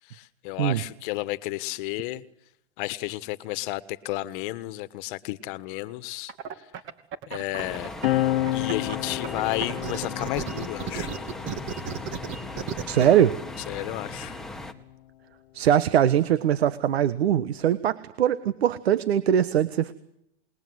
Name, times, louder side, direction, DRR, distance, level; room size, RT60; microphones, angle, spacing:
voice 1, 0.1-2.2 2.8-6.3 6.6-6.7 7.3-7.9 8.5-11.1 13.7-14.4, left 18 dB, 55° left, 1.4 m, -32 dB
sound 1, 6.3-8.1 8.5-13.1, right 8 dB, 40° right, 2.8 m, -34 dB
sound 2, 7.6-14.7, left 1 dB, ahead, 2.1 m, -38 dB
sound 3, 8.0-15.0 15.9-17.8, left 15 dB, 75° left, 1.1 m, -33 dB
voice 2, 12.9-13.3 15.5-19.9, right 10 dB, 90° right, 1.4 m, -22 dB
28.5 x 21.0 x 8.0 m
supercardioid pair, 135°, 31 cm